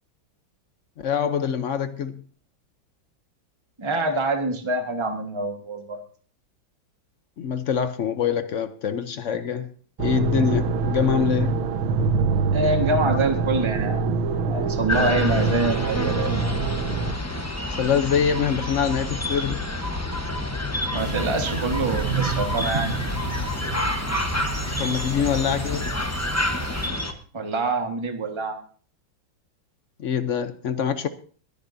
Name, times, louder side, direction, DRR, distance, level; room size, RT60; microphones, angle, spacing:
voice 1, 1.0-2.2 7.4-9.7 10.0-11.5 17.7-19.7 24.8-25.9 30.0-31.1, left 7 dB, 65° left, 0.7 m, -24 dB
voice 2, 3.8-6.0 11.5-11.6 12.5-14.1 14.5-16.4 20.9-23.0 27.3-28.6, right 2 dB, 15° right, 1.3 m, -26 dB
sound 1, 10.0-17.1, right 4 dB, 85° right, 1.7 m, -24 dB
sound 2, 14.9-27.1, left 1 dB, 15° left, 0.6 m, -28 dB
sound 3, 21.0-26.9, right 6 dB, 40° right, 1.1 m, -32 dB
22.0 x 10.5 x 2.7 m
omnidirectional pair, 2.1 m